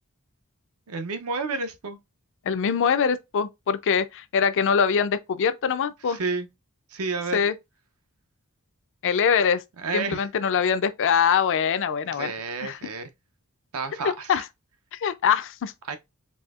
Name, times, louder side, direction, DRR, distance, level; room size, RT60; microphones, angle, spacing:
voice 1, 0.9-2.0 6.1-6.5 6.9-7.4 9.8-10.3 12.1-13.1 13.7-14.4 15.9-16.0, right 4 dB, 70° right, 0.6 m, -30 dB
voice 2, 2.4-6.2 7.3-7.5 9.0-9.6 9.9-12.3 12.6-12.8 14.3-14.4 14.9-15.7, left 7 dB, 60° left, 0.4 m, -23 dB
4.2 x 2.6 x 2.4 m
head